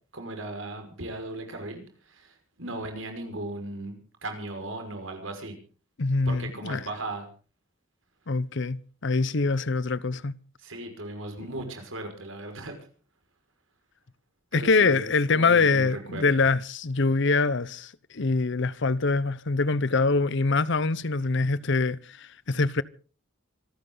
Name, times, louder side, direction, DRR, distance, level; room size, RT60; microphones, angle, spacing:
voice 1, 0.1-1.8 2.1-4.0 4.2-5.5 6.3-7.3 10.6-12.7 14.5-16.2, right 2 dB, 80° right, 5.6 m, -37 dB
voice 2, 6.0-6.9 8.3-10.3 14.5-22.8, left 3 dB, 65° left, 0.9 m, -24 dB
26.0 x 13.5 x 3.9 m
head